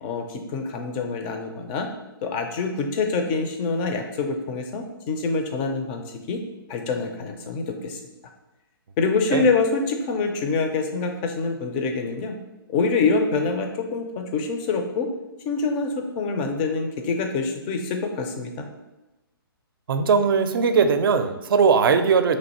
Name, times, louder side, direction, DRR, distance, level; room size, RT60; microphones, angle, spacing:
voice 1, 0.0-1.9 2.2-6.4 6.7-8.0 9.0-12.4 12.7-15.1 15.5-18.7, left 4 dB, 25° left, 4 dB, 0.4 m, -25 dB
voice 2, 19.9-22.4, right 5 dB, 65° right, 9 dB, 0.4 m, -19 dB
3.1 x 2.6 x 4.1 m, 1.0 s
hypercardioid pair, 145°, 13 cm